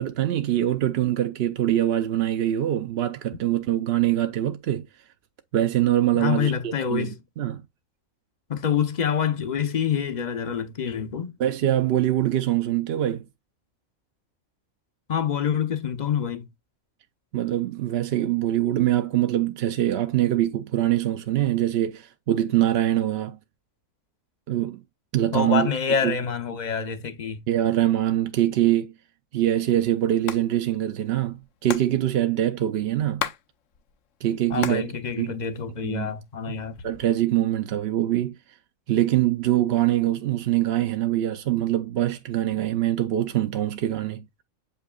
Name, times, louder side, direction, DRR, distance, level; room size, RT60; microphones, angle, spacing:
voice 1, 0.0-4.9 5.5-7.6 11.4-13.2 17.3-23.4 24.5-24.8 25.1-25.7 26.0-26.1 27.5-28.9 29.3-33.3 34.2-35.4 35.8-36.1 36.5-36.6 36.8-38.4 38.9-44.3, right 13 dB, 60° right, 0.7 m, -24 dB
voice 2, 6.1-7.2 8.5-11.4 15.1-16.5 25.3-27.4 34.5-36.8, left 7 dB, 45° left, 0.7 m, -26 dB
Hands, 30.1-30.4 30.7-30.8 31.0-33.4 33.7-34.9 35.2-36.0 36.6-37.2, left 9 dB, 70° left, 1.0 m, -33 dB
7.6 x 5.6 x 2.2 m
omnidirectional pair, 1.4 m